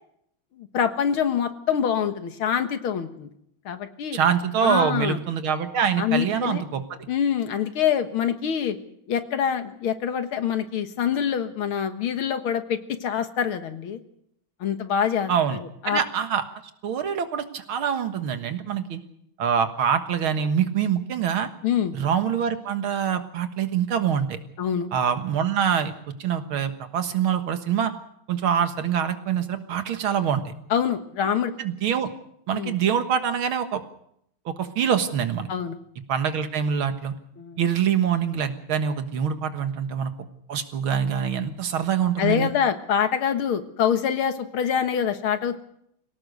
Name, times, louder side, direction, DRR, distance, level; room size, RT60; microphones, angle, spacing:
voice 1, 0.6-3.3 3.7-4.2 4.6-5.2 6.0-6.6 7.1-8.8 9.1-14.0 14.6-16.0 21.6-22.0 24.6-24.9 30.7-31.5 32.5-32.7 35.5-35.8 37.4-37.6 42.2-45.6, left 8 dB, 85° left, 9 dB, 2.3 m, -25 dB
voice 2, 4.1-7.0 15.3-15.6 15.9-16.4 16.8-19.0 19.4-21.5 21.9-24.4 24.9-25.9 26.2-27.9 28.3-30.5 31.6-32.1 32.5-33.8 34.5-35.5 36.1-37.1 37.6-40.1 40.5-42.5, right 8 dB, 85° right, 8 dB, 2.3 m, -25 dB
23.0 x 17.5 x 6.7 m, 0.72 s
omnidirectional pair, 2.2 m